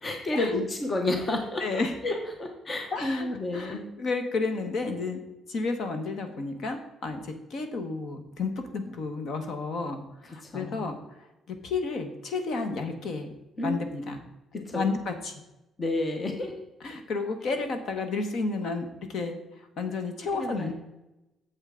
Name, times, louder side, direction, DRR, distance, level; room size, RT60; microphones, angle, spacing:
voice 1, 0.0-3.9 10.4-10.9 13.6-14.1 14.5-14.8 15.8-16.5 20.4-20.7, left 2 dB, 20° left, 4 dB, 0.8 m, -31 dB
voice 2, 1.6-1.9 2.9-3.3 3.5-5.2 5.5-11.0 11.5-13.3 13.6-14.2 14.7-15.3 16.8-19.4 19.8-20.7, left 3 dB, 50° left, 7 dB, 1.1 m, -31 dB
8.8 x 7.3 x 3.7 m, 0.95 s
cardioid pair, 175°, 0 cm